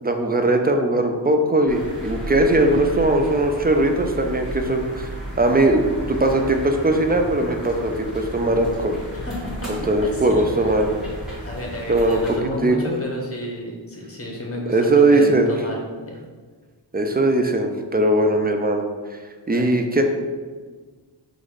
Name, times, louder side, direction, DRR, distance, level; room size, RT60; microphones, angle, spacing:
voice 1, 0.0-5.1 5.4-9.0 9.7-10.9 11.9-12.8 14.7-15.5 16.9-18.8 19.5-20.0, right 2 dB, 20° right, 4 dB, 0.4 m, -19 dB
sound 1, 1.7-12.4, equal, ahead, 1.3 m, -34 dB
voice 2, 9.1-9.7 10.1-10.5 11.4-15.8 16.0-16.1 19.5-19.8, equal, 30° left, -1 dB, 1.1 m, -31 dB
3.8 x 2.6 x 4.7 m, 1.5 s
wide cardioid pair, 70°, 48 cm